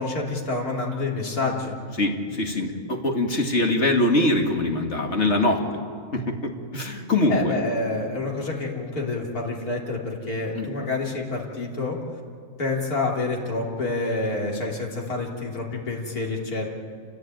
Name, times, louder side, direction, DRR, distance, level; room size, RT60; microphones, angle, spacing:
voice 1, 0.0-1.8 7.3-12.0 12.6-16.7, left 3 dB, 80° left, -1 dB, 3.7 m, -28 dB
voice 2, 2.0-5.6 6.1-7.5 10.5-10.7, left 2 dB, 50° left, 3 dB, 2.4 m, -23 dB
28.5 x 15.5 x 9.2 m, 2.3 s
omnidirectional pair, 1.6 m